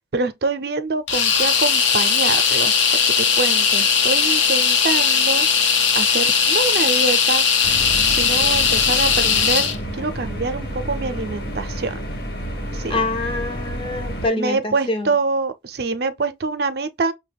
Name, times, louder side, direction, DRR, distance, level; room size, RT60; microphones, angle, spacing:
voice 1, 0.1-2.7 3.2-5.5 5.9-9.7 9.9-12.0 12.7-13.0 14.3-17.1, right 3 dB, 55° right, 0.5 m, -25 dB
sound 1, 1.1-9.8, left 6 dB, 80° left, 0.8 m, -18 dB
sound 2, 7.6-14.3, equal, 55° left, 1.1 m, -30 dB
voice 2, 12.9-15.1, left 2 dB, 30° left, 0.5 m, -25 dB
5.7 x 2.1 x 3.4 m
head